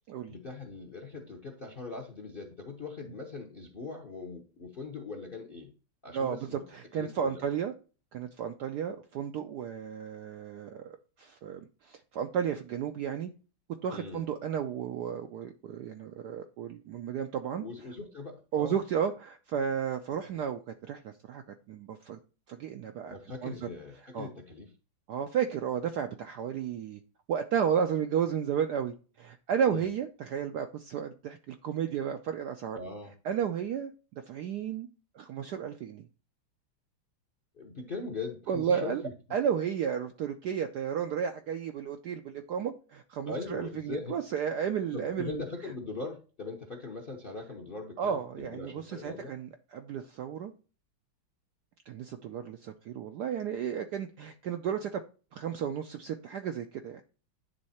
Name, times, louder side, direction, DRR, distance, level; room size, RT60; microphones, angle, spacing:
voice 1, 0.3-5.7 6.0-6.6 6.9-7.4 13.9-14.2 17.6-18.7 23.1-24.7 29.7-29.9 32.7-33.1 37.6-39.1 43.3-44.2 44.9-49.3, left 3 dB, 45° left, 0.7 m, -41 dB
voice 2, 6.1-7.7 8.1-13.3 13.8-17.6 18.5-21.4 21.7-22.2 22.5-23.2 23.4-23.7 24.1-24.3 25.1-27.0 27.3-32.8 33.2-34.9 35.1-36.0 38.5-39.0 39.3-45.4 48.0-50.5 51.9-55.0 55.3-57.0, right 8 dB, 75° right, 0.9 m, -33 dB
9.6 x 3.6 x 4.2 m
omnidirectional pair, 2.3 m